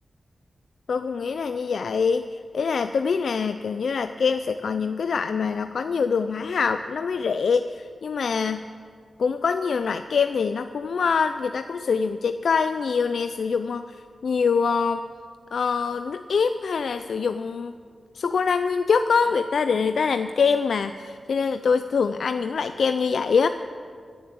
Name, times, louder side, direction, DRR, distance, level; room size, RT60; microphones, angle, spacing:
voice 1, 0.9-8.7 9.2-15.0 15.5-17.7 18.1-23.5, left 5 dB, 75° left, 10 dB, 0.4 m, -24 dB
19.5 x 7.4 x 8.4 m, 2.1 s
wide cardioid pair, 95°, 0 cm